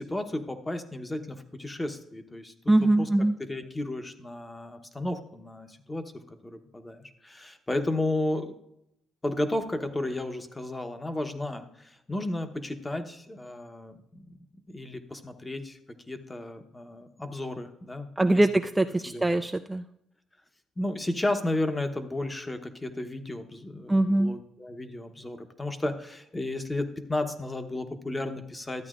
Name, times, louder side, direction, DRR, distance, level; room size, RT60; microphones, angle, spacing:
voice 1, 0.0-2.5 3.0-3.1 3.4-8.5 9.2-14.2 14.7-15.8 16.1-18.4 19.1-19.4 20.8-28.9, left 1 dB, 15° left, 7 dB, 0.9 m, -33 dB
voice 2, 2.7-3.4 18.2-19.8 23.9-24.4, right 1 dB, 10° right, 6 dB, 0.3 m, -23 dB
13.0 x 8.7 x 2.5 m, 0.79 s
cardioid pair, 90°, 0 cm